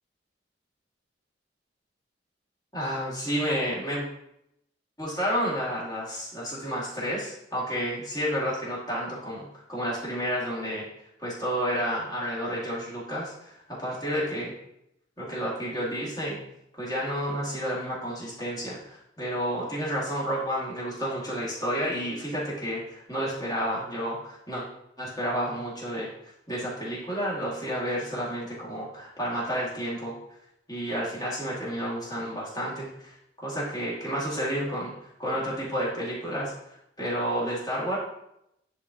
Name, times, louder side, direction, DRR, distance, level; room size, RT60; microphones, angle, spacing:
voice 1, 2.7-4.1 5.0-10.8 11.2-14.5 15.2-16.4 16.8-24.6 25.0-26.1 26.5-30.1 30.7-33.2 33.4-38.0, equal, 20° left, -6 dB, 1.8 m, -31 dB
9.8 x 3.7 x 2.7 m, 0.81 s
head